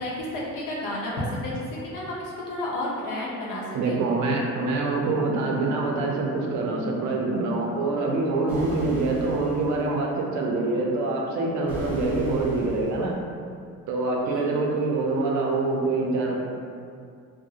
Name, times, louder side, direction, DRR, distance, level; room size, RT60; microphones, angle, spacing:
voice 1, 0.0-4.0 14.2-14.6, left 1 dB, 90° left, -5 dB, 0.7 m, -31 dB
voice 2, 3.7-13.1 13.9-16.4, right 3 dB, 65° right, 0 dB, 0.4 m, -25 dB
sound 1, 8.5-9.9 11.7-13.1, equal, 5° right, 0.4 m, -36 dB
2.3 x 2.0 x 2.6 m, 2.3 s
cardioid pair, 175°, 31 cm